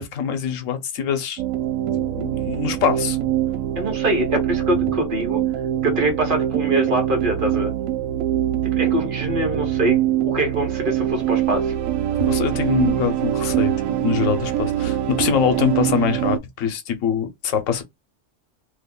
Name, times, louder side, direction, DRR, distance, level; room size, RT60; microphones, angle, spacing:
voice 1, 0.0-1.4 2.2-3.3 12.2-17.8, left 7 dB, 90° left, 1.1 m, -24 dB
sound 1, 1.4-16.4, right 12 dB, 85° right, 0.9 m, -23 dB
voice 2, 3.8-5.4 5.8-7.7 8.7-11.7 13.9-14.0, right 1 dB, 45° right, 1.2 m, -24 dB
2.8 x 2.2 x 3.6 m
omnidirectional pair, 1.3 m